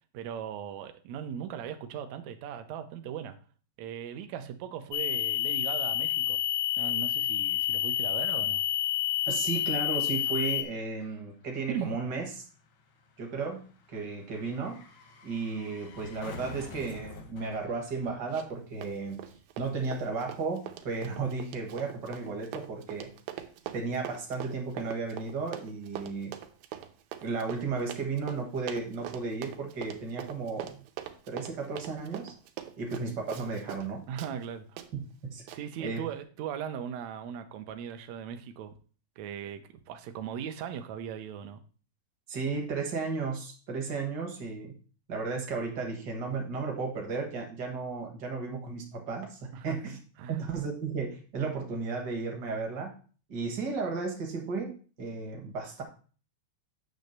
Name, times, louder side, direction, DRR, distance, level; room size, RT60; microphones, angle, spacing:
voice 1, 0.1-3.3 3.8-6.4 6.8-8.6 11.7-11.9 34.1-34.8 35.5-38.7 39.2-41.6 49.5-49.8 50.2-50.4, right 8 dB, 75° right, 1.7 m, -38 dB
sound 1, 4.9-10.6, left 13 dB, 85° left, 2.4 m, -29 dB
sound 2, 8.6-19.0 19.2-19.3, left 5 dB, 70° left, 1.2 m, -50 dB
voice 2, 9.3-12.4 13.2-13.6 13.9-14.8 15.2-19.2 19.6-23.1 23.7-26.3 27.2-30.8 31.3-32.3 32.8-34.0 34.9-36.0 42.3-44.8 45.1-50.0 50.3-52.9 53.3-55.8, right 4 dB, 50° right, 1.3 m, -34 dB
Run, 18.3-18.6 18.8-33.9 34.2-34.3 34.8-34.9 35.5-35.6, right 11 dB, 90° right, 2.5 m, -43 dB
9.2 x 3.2 x 6.5 m
omnidirectional pair, 4.0 m